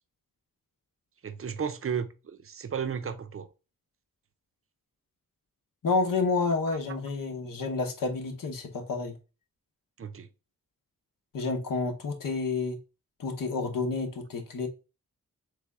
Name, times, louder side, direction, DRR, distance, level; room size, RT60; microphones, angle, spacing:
voice 1, 1.2-3.5 10.0-10.3, right 7 dB, 45° right, 0.5 m, -34 dB
voice 2, 5.8-9.1 11.3-12.8 13.2-14.7, left 3 dB, 80° left, 0.9 m, -29 dB
3.5 x 3.3 x 3.5 m
wide cardioid pair, 110°, 33 cm